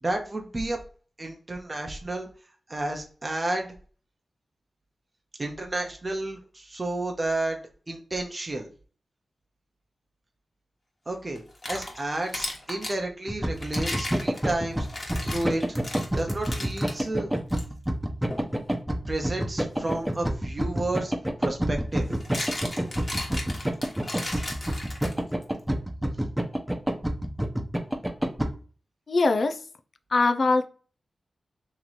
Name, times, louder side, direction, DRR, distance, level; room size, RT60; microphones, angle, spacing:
voice 1, 0.0-0.8 1.2-2.3 2.7-3.7 5.4-7.6 7.9-8.7 11.1-11.4 11.7-14.9 15.2-15.8 16.1-17.3 19.1-21.1 21.4-22.1, right 2 dB, 35° right, 2 dB, 0.8 m, -31 dB
sound 1, 11.4-13.0 13.6-17.0 17.5-17.6 18.3-18.5 20.6-20.7 21.9-25.4, left 2 dB, 40° left, 1.3 m, -36 dB
sound 2, 13.3-28.5, right 1 dB, 10° right, 0.8 m, -27 dB
voice 2, 29.1-29.6 30.1-30.7, left 3 dB, 65° left, 8 dB, 0.4 m, -22 dB
3.1 x 2.9 x 4.0 m, 0.39 s
cardioid pair, 55°, 0 cm